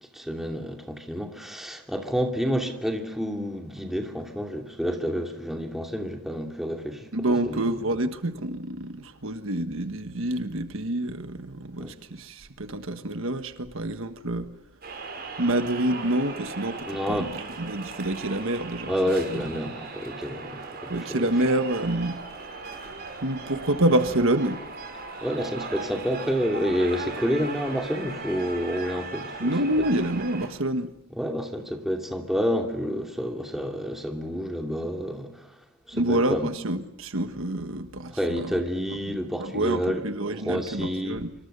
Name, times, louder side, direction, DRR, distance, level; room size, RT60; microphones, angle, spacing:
voice 1, 0.1-7.1 7.5-7.6 11.8-11.9 16.8-17.3 18.9-21.3 25.2-29.5 31.2-35.5 35.9-36.5 38.1-40.0 40.4-41.2, equal, ahead, 2.7 m, -29 dB
voice 2, 7.1-14.5 15.4-18.9 19.3-19.4 20.9-22.2 23.2-24.6 29.4-30.9 35.9-38.6 38.9-41.3, right 1 dB, 60° right, 1.4 m, -27 dB
sound 1, 14.8-30.5, right 4 dB, 45° right, 5.9 m, -38 dB
26.0 x 24.5 x 6.8 m
head